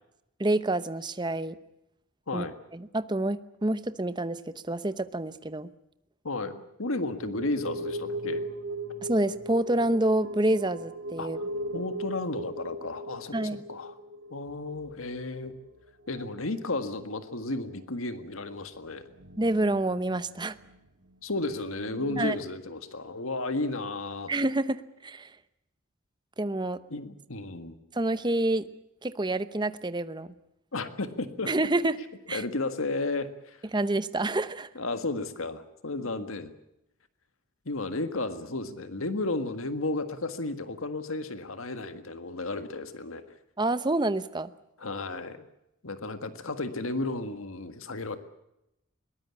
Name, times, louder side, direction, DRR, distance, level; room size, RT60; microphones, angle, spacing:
voice 1, 0.4-1.6 2.3-2.4 2.7-5.7 9.0-11.4 13.3-13.6 19.4-20.6 22.2-22.4 24.3-25.3 26.4-26.8 27.9-28.7 29.0-30.3 31.5-32.0 32.3-32.4 33.7-34.7 43.6-44.5, right 2 dB, 20° right, 13 dB, 0.8 m, -28 dB
voice 2, 6.2-8.4 11.2-11.5 11.7-13.9 14.3-15.5 16.1-19.0 21.2-24.4 26.9-27.8 30.7-31.5 32.3-33.6 34.8-36.5 37.7-43.2 44.8-45.4 45.8-48.2, left 2 dB, 80° left, 10 dB, 1.7 m, -33 dB
sound 1, 7.2-15.7 16.0-16.6 16.9-17.0 17.5-17.6 18.6-20.8 21.1-21.2 21.4-22.3, equal, 80° right, 2.3 m, -38 dB
22.0 x 19.5 x 8.4 m, 0.86 s
head